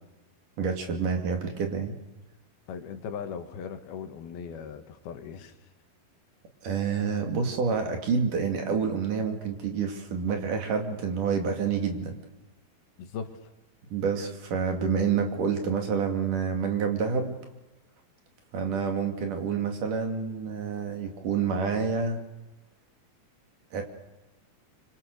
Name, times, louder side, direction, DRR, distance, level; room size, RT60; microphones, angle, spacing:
voice 1, 0.6-1.9 6.6-12.2 13.9-17.4 18.5-22.2 23.7-23.8, right 5 dB, 60° right, 4 dB, 3.9 m, -28 dB
voice 2, 2.7-5.6 13.0-13.4, left 7 dB, 85° left, 7 dB, 3.7 m, -38 dB
26.0 x 24.5 x 6.7 m, 1.1 s
omnidirectional pair, 4.3 m